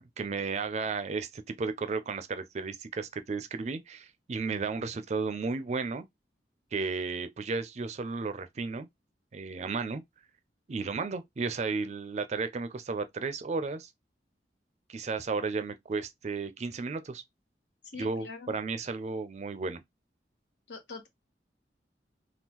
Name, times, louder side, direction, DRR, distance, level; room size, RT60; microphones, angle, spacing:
voice 1, 0.0-6.1 6.7-8.9 9.3-10.0 10.7-13.9 14.9-17.2 18.0-19.8, right 4 dB, 40° right, 0.4 m, -33 dB
voice 2, 17.9-18.5 20.7-21.1, left 4 dB, 90° left, 0.9 m, -43 dB
3.6 x 2.3 x 2.9 m
head